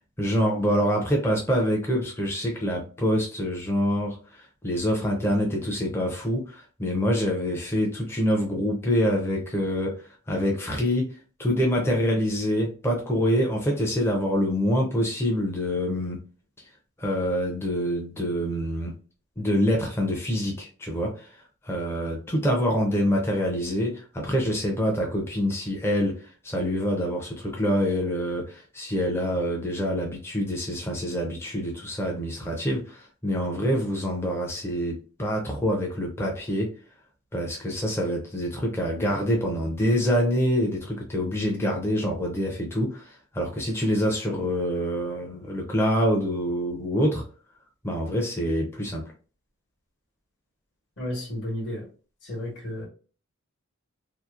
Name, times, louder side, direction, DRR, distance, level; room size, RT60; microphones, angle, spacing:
voice 1, 0.2-11.1 11.4-16.2 17.0-18.9 19.4-21.3 21.6-36.7 37.3-47.2 47.8-49.0, equal, 10° left, 0 dB, 0.4 m, -26 dB
voice 2, 51.0-51.9 52.2-52.9, left 1 dB, 50° left, -4 dB, 1.1 m, -32 dB
2.7 x 2.0 x 2.3 m, 0.37 s
head